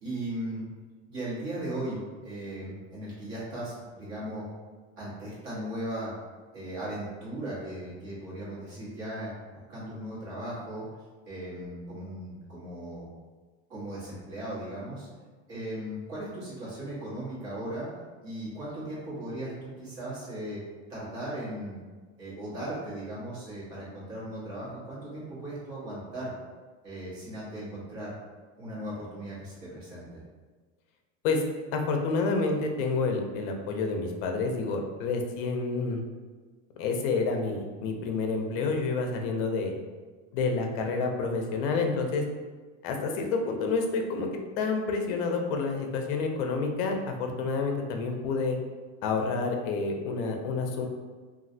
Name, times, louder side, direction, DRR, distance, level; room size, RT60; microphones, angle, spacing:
voice 1, 0.0-0.6 1.1-4.4 5.0-6.1 6.5-10.8 11.2-13.1 13.7-15.1 15.5-17.9 18.2-20.6 20.9-21.8 22.2-26.3 26.8-28.1 28.6-30.2, right 1 dB, 40° right, -8 dB, 1.3 m, -37 dB
voice 2, 31.7-36.0 36.8-39.7 40.3-42.2 42.8-44.3 44.6-48.6 49.0-50.9, left 4 dB, 50° left, 3 dB, 0.5 m, -29 dB
3.0 x 2.4 x 2.6 m, 1.4 s
cardioid pair, 175°, 35 cm